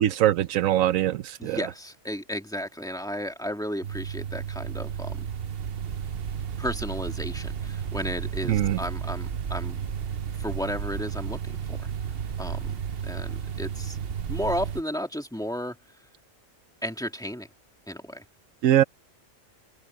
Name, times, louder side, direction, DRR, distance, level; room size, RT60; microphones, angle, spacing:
voice 1, 0.0-1.6 8.5-8.8 18.6-18.8, right 12 dB, 90° right, 1.1 m, -22 dB
voice 2, 1.4-5.3 6.6-9.8 10.4-11.4 11.7-11.9 12.4-14.0 14.3-15.8 16.8-17.5 17.9-18.2, equal, 5° left, 2.0 m, -33 dB
sound 1, 3.8-14.8, right 7 dB, 50° right, 1.0 m, -33 dB
open air
omnidirectional pair, 1.4 m